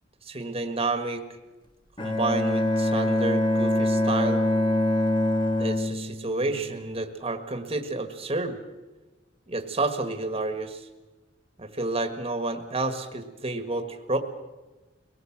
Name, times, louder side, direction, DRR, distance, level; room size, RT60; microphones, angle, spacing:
voice 1, 0.2-1.2 2.0-4.4 5.6-8.6 9.5-10.9 11.6-14.2, right 2 dB, 30° right, 7 dB, 1.6 m, -30 dB
Bowed string instrument, 2.0-7.0, left 1 dB, 25° left, 1.6 m, -24 dB
23.5 x 18.5 x 7.4 m, 1.2 s
head